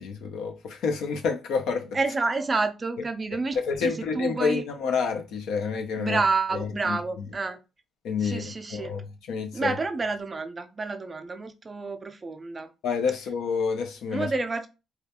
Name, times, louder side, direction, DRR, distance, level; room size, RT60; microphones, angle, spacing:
voice 1, 0.0-2.0 3.3-6.2 6.5-7.0 8.0-9.8 12.8-14.3, left 5 dB, 85° left, 0.5 m, -29 dB
voice 2, 1.9-4.6 6.0-7.6 8.2-8.9 9.5-12.7 14.1-14.7, right 3 dB, 30° right, 0.3 m, -29 dB
2.3 x 2.2 x 2.8 m
cardioid pair, 90°, 0 cm